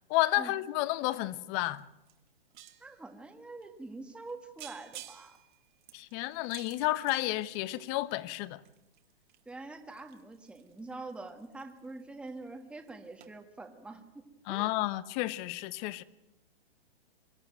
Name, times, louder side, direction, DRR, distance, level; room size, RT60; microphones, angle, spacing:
voice 1, 0.1-1.8 5.9-8.6 14.5-16.0, left 17 dB, 30° left, 1.0 m, -31 dB
sound 1, 1.8-1.9 2.1-3.0 3.6-3.7 4.1-4.3 4.6-8.1 8.6-12.0 12.3-12.6 12.9-13.0 13.2-13.3, right 13 dB, 50° right, 2.1 m, -52 dB
voice 2, 2.8-5.4 9.4-14.0 14.5-14.7, right 2 dB, 5° right, 1.5 m, -45 dB
24.5 x 13.0 x 9.0 m
hypercardioid pair, 135°, 30 cm